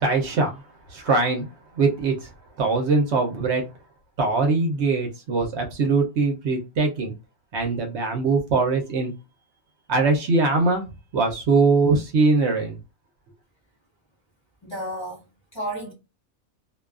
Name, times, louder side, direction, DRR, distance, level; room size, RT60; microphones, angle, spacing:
voice 1, 0.0-0.6 0.9-1.5 1.8-2.3 2.6-3.6 4.2-7.1 7.5-9.1 9.9-10.8 11.1-12.8, right 3 dB, 65° right, 0.9 m, -22 dB
voice 2, 14.6-15.9, right 1 dB, 25° left, 0.8 m, -33 dB
2.6 x 2.2 x 2.3 m
omnidirectional pair, 1.3 m